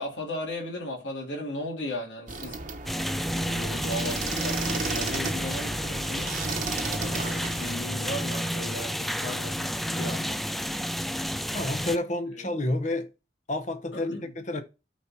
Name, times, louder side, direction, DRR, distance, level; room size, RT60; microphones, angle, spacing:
voice 1, 0.0-2.6 3.4-6.3 6.8-10.4 12.3-12.5 13.9-14.3, left 1 dB, 85° left, 2.5 m, -36 dB
sound 1, 2.3-7.7, right 4 dB, 45° right, 1.0 m, -35 dB
sound 2, 2.9-12.0, equal, ahead, 0.3 m, -30 dB
voice 2, 11.5-13.1 13.5-14.6, left 1 dB, 40° left, 1.0 m, -29 dB
12.5 x 4.3 x 2.8 m
head